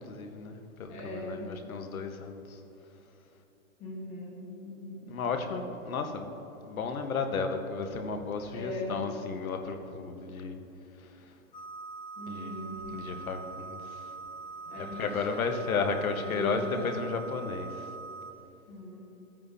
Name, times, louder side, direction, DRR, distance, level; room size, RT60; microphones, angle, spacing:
voice 1, 0.1-2.4 5.1-6.3 6.7-10.6 12.3-12.5 12.9-13.8 14.8-17.7, left 5 dB, 75° left, 6 dB, 1.3 m, -33 dB
voice 2, 0.9-1.5 3.8-5.1 8.5-9.0 12.2-13.0 14.7-15.6 16.1-17.0 18.7-19.0, left 1 dB, 15° left, -4 dB, 1.3 m, -39 dB
sound 1, 11.5-18.3, right 4 dB, 35° left, 0.5 m, -43 dB
15.0 x 9.1 x 2.7 m, 3.0 s
hypercardioid pair, 175°, 42 cm